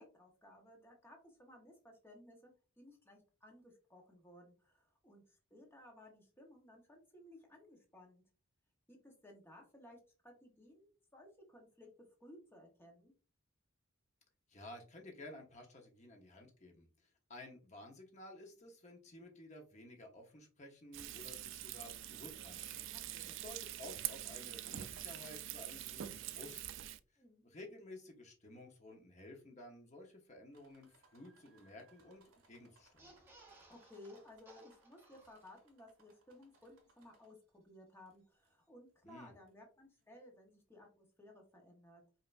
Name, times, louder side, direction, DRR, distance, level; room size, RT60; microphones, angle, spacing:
voice 1, 0.0-8.2 8.9-11.9 12.2-13.1 23.1-23.3 27.2-27.4 33.5-42.0, left 1 dB, 10° left, 1 dB, 1.0 m, -59 dB
voice 2, 14.5-16.9 17.3-22.8 23.2-26.8 27.4-33.1 39.0-39.3, left 1 dB, 35° left, 2 dB, 1.0 m, -54 dB
Frying (food), 20.9-27.0, right 12 dB, 60° right, 0.3 m, -45 dB
sound 1, 30.5-37.6 38.1-38.7 39.5-39.6 40.0-40.1, right 3 dB, 80° right, 1.7 m, -71 dB
sound 2, 32.9-35.8 36.2-36.3 36.5-36.7, right 3 dB, 10° right, 0.8 m, -63 dB
5.4 x 2.8 x 2.5 m, 0.36 s
head